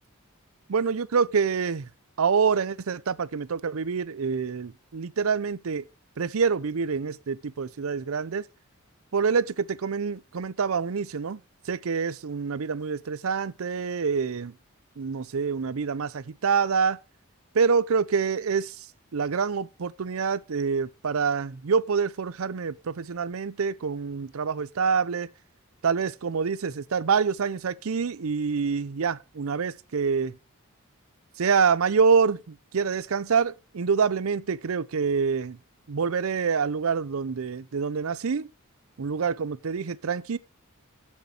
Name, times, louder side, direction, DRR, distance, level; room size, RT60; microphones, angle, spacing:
voice 1, 0.7-1.9 2.2-5.8 6.2-8.4 9.1-11.4 11.7-14.5 15.0-17.0 17.5-18.8 19.1-25.3 25.8-30.3 31.4-35.6 35.9-38.5 39.0-40.4, right 5 dB, 75° right, 0.5 m, -26 dB
8.3 x 6.6 x 5.7 m
head